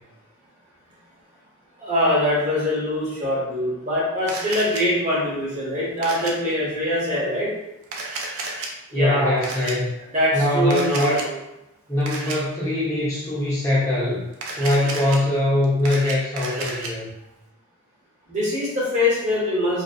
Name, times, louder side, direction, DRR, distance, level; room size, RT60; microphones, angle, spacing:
voice 1, 1.8-7.5 8.9-9.5 10.1-11.3 18.3-19.8, left 1 dB, 35° right, -6 dB, 0.9 m, -23 dB
Camera, 4.3-4.8 6.0-6.3 7.8-8.7 9.4-9.7 10.7-11.3 12.1-12.4 14.3-15.2 15.6-16.9, right 3 dB, 80° right, 0.4 m, -31 dB
voice 2, 8.9-9.9 10.3-11.2 11.9-14.3 14.6-17.1, left 1 dB, 15° left, -9 dB, 0.7 m, -22 dB
2.5 x 2.2 x 2.3 m, 0.89 s
head